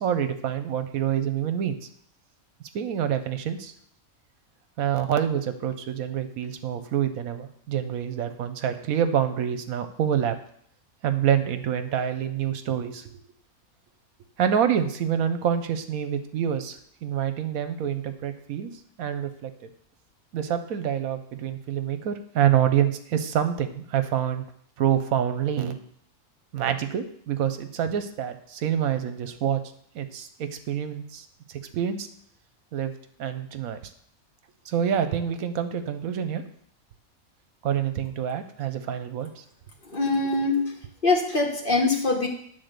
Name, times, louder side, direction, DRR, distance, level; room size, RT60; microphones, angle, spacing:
voice 1, 0.0-1.8 2.7-3.7 4.8-10.4 11.0-13.1 14.4-18.7 19.0-19.7 20.3-24.4 24.8-25.8 26.5-29.6 29.9-31.2 31.7-32.1 32.7-32.9 33.2-33.8 34.7-36.4 37.6-39.4, right 9 dB, 75° right, 9 dB, 1.1 m, -26 dB
voice 2, 39.8-40.7 41.0-42.3, left 3 dB, 40° left, 1 dB, 1.2 m, -23 dB
9.5 x 3.9 x 6.6 m, 0.65 s
omnidirectional pair, 1.5 m